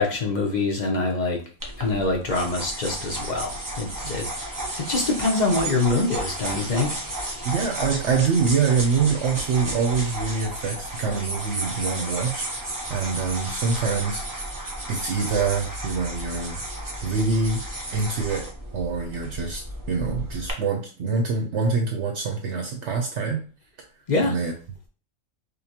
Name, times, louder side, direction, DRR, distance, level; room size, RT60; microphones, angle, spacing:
voice 1, 0.0-1.4 1.8-4.3 4.6-7.0 24.1-24.4, left 3 dB, 40° left, 0 dB, 0.7 m, -24 dB
sound 1, 1.6-20.5, right 1 dB, 20° right, 0.5 m, -33 dB
voice 2, 7.4-14.5 14.9-16.6 17.0-17.6 17.9-18.4 18.7-23.4 24.2-24.5, right 5 dB, 65° right, 2 dB, 0.9 m, -25 dB
5.2 x 2.2 x 2.9 m, 0.38 s
omnidirectional pair, 1.4 m